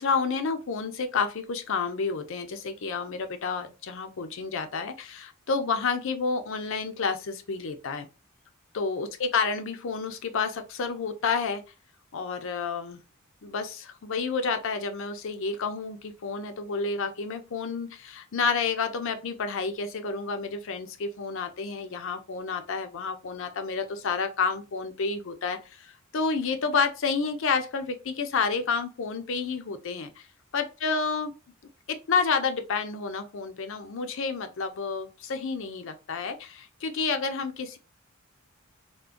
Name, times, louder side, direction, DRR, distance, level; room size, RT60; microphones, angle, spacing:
voice 1, 0.0-8.1 8.7-11.6 12.1-13.0 13.4-30.3 30.5-31.3 31.9-37.8, left 5 dB, 65° left, 0.5 m, -30 dB
3.6 x 2.1 x 2.5 m
head